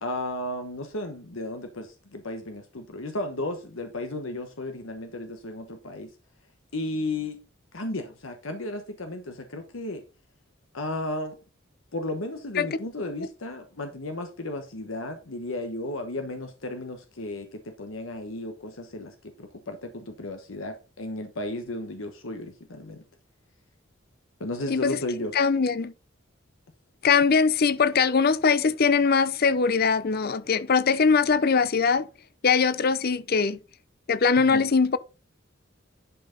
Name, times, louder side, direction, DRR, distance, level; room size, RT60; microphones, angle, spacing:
voice 1, 0.0-6.1 6.7-7.4 7.7-10.0 10.7-11.4 11.9-23.0 24.4-25.4 34.4-34.6, left 2 dB, 75° left, 1.1 m, -34 dB
voice 2, 24.7-25.0 25.3-25.9 27.0-32.1 32.4-33.6 34.1-35.0, left 5 dB, 50° left, 0.6 m, -21 dB
11.0 x 5.6 x 3.9 m
head